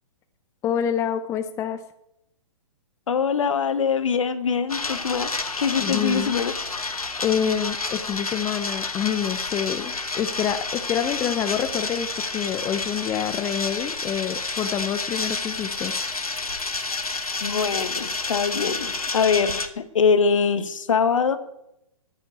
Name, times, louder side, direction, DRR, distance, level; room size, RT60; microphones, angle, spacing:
voice 1, 0.6-1.8 5.8-6.3 7.2-15.9, left 9 dB, 15° left, 10 dB, 0.5 m, -27 dB
voice 2, 3.1-6.5 17.4-21.4, left 6 dB, 65° left, 12 dB, 1.3 m, -23 dB
sound 1, 4.7-19.7, left 3 dB, 85° left, 1.2 m, -30 dB
9.6 x 8.6 x 8.9 m, 0.83 s
figure-of-eight pair, 120°, 18 cm